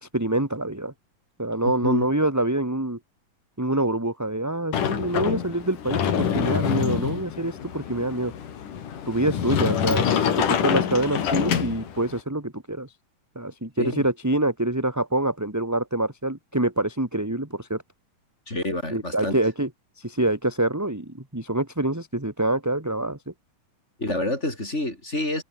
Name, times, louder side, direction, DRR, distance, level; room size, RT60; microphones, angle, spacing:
voice 1, 0.0-0.9 1.4-3.0 3.6-8.3 9.1-10.1 10.4-12.9 13.4-17.8 18.9-19.7 20.0-23.3, right 1 dB, 5° right, 1.9 m, -26 dB
Sliding door, 4.7-12.2, left 8 dB, 70° left, 4.0 m, -26 dB
voice 2, 18.5-19.3 24.0-25.4, left 1 dB, 20° left, 6.9 m, -28 dB
omnidirectional pair, 3.9 m